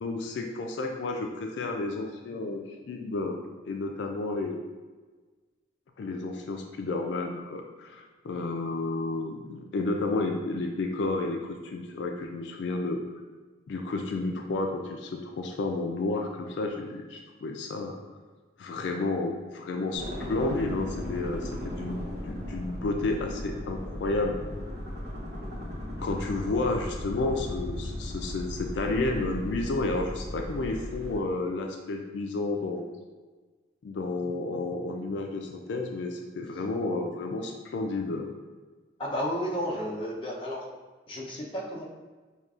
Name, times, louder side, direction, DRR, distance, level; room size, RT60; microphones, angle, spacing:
voice 1, 0.0-3.4 3.7-4.6 6.0-13.0 13.7-18.0 18.6-20.0 20.3-24.3 26.0-32.9 33.8-38.2, left 2 dB, 75° left, 3 dB, 0.3 m, -31 dB
sound 1, 19.9-31.2, left 1 dB, 55° right, 1.0 m, -36 dB
voice 2, 39.0-40.7 41.1-41.8, equal, 30° left, -3 dB, 0.5 m, -32 dB
5.1 x 2.3 x 2.3 m, 1.3 s
head